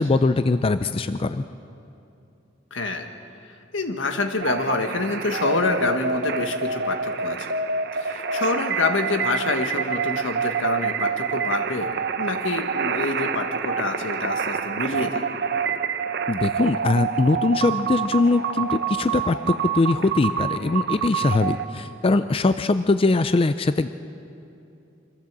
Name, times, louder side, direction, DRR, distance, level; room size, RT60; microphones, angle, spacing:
voice 1, 0.0-1.4 16.3-23.9, left 3 dB, 30° left, 11 dB, 0.4 m, -21 dB
voice 2, 2.7-3.1 3.7-7.6 7.9-11.9 12.2-15.3, left 3 dB, 80° left, 5 dB, 1.6 m, -27 dB
sound 1, 4.4-21.6, right 6 dB, 60° right, 0.8 m, -27 dB
25.0 x 14.5 x 7.5 m, 2.7 s
head